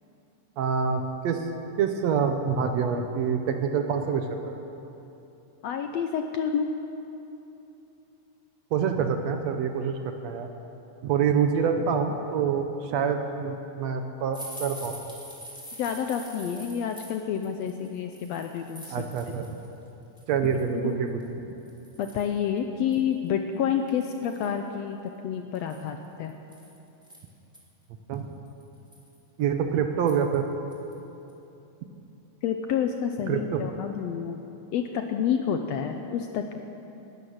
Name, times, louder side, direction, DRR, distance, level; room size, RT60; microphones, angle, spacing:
voice 1, 0.6-1.5 1.8-4.6 8.7-10.0 10.2-10.5 11.0-15.0 18.9-19.4 20.3-21.1 28.1-28.3 29.4-30.5 33.3-33.6, right 6 dB, 70° right, 6 dB, 1.9 m, -26 dB
voice 2, 5.6-6.7 15.8-19.0 20.8-21.0 22.0-25.0 25.2-26.3 32.4-34.4 34.7-36.6, left 8 dB, 75° left, 5 dB, 1.6 m, -29 dB
sound 1, 14.3-19.7 20.0-20.6 21.2-21.3 21.7-22.4 22.9-23.0 23.3-23.4 23.9-24.5 25.5-27.6 28.1-28.2 28.6-29.2 30.1-30.4 30.7-30.9 31.3-31.4, right 1 dB, ahead, 2.4 m, -44 dB
18.5 x 12.0 x 6.5 m, 2.9 s
omnidirectional pair, 3.6 m